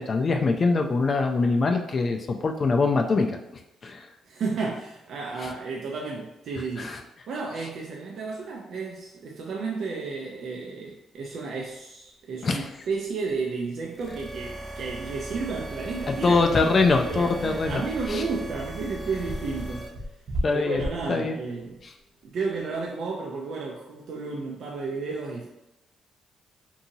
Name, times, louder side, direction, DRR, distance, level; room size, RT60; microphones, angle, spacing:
voice 1, 0.1-3.4 3.8-4.1 6.8-7.0 12.4-12.6 16.1-17.8 18.1-18.2 20.4-20.8 21.1-21.4, left 3 dB, 40° left, 4 dB, 0.3 m, -23 dB
voice 2, 4.3-6.9 7.3-19.9 20.5-21.8 22.2-25.5, right 4 dB, 65° right, -1 dB, 0.4 m, -32 dB
sound 1, 12.4-12.5 12.8-12.9 13.3-13.4 13.8-13.9 14.3-22.8, equal, 45° right, 0.8 m, -37 dB
sound 2, 13.9-19.9, right 1 dB, 5° right, 0.9 m, -38 dB
2.7 x 2.7 x 2.7 m, 0.92 s
cardioid pair, 90°, 0 cm